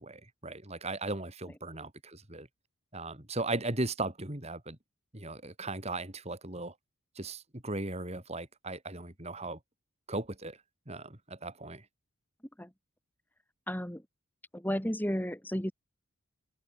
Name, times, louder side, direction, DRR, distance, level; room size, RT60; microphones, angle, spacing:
voice 1, 0.0-2.5 2.9-4.8 5.1-6.7 7.1-9.6 10.1-10.6 10.9-11.8, right 2 dB, 30° right, 3.2 m, -37 dB
voice 2, 13.7-14.0 14.5-15.7, equal, 10° left, 2.0 m, -33 dB
head